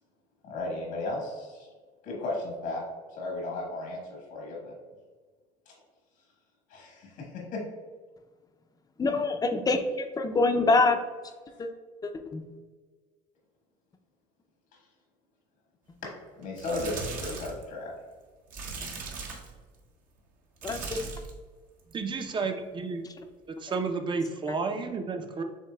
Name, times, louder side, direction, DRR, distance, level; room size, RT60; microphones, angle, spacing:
voice 1, 0.4-1.7 2.0-2.8 3.1-4.7 5.7-5.8 6.7-7.6 9.1-9.2 16.4-17.9, left 2 dB, 75° left, -2 dB, 1.3 m, -35 dB
voice 2, 9.0-11.0 11.6-11.7 12.0-12.4 20.6-21.0, left 3 dB, 25° left, 6 dB, 0.5 m, -25 dB
sound 1, 16.4-17.6 18.5-19.6 20.6-21.4 21.8-22.1 23.7-23.8, right 4 dB, 65° right, 1.0 m, -38 dB
voice 3, 21.9-23.0 23.5-25.4, right 4 dB, 30° right, 6 dB, 0.6 m, -31 dB
7.2 x 2.8 x 2.3 m, 1.5 s
supercardioid pair, 85°, 16 cm